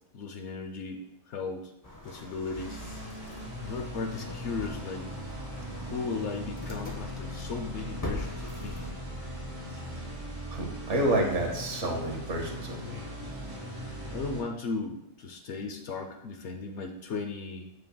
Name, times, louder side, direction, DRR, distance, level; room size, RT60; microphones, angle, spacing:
voice 1, 0.1-1.0 1.3-1.7 2.0-2.8 3.1-5.1 5.7-8.8 9.7-9.9 13.6-17.7, left 4 dB, 65° left, 3 dB, 0.8 m, -37 dB
sound 1, 1.8-8.9, left 2 dB, 25° left, 0.4 m, -43 dB
sound 2, 2.5-14.4, equal, 25° right, 2.5 m, -39 dB
voice 2, 10.5-13.0, right 1 dB, 60° right, 1 dB, 1.3 m, -29 dB
6.8 x 6.5 x 2.2 m, 0.84 s
omnidirectional pair, 1.4 m